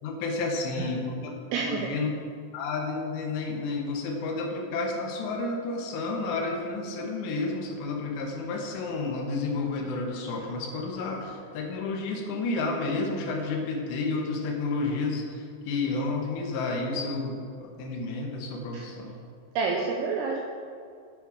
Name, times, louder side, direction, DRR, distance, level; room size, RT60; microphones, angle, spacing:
voice 1, 0.0-1.3 1.6-2.1 2.5-19.2, left 3 dB, 75° left, 2 dB, 3.2 m, -31 dB
voice 2, 1.5-1.9 18.7-18.9 19.6-20.4, right 4 dB, 85° right, 0 dB, 2.3 m, -28 dB
8.9 x 8.1 x 4.9 m, 2.3 s
omnidirectional pair, 5.4 m